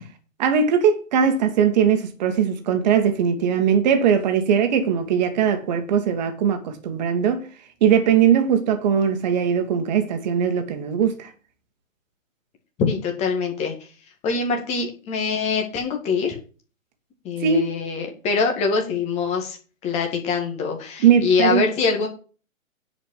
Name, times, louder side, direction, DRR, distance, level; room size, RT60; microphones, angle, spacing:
voice 1, 0.4-7.4 7.8-11.3 17.4-17.6 21.0-21.6, right 7 dB, 30° right, 1.9 m, -20 dB
voice 2, 12.8-13.7 14.2-16.4 17.2-19.6 19.8-22.1, left 5 dB, 15° left, 2.0 m, -24 dB
10.0 x 5.1 x 7.8 m
figure-of-eight pair, 125°, 41 cm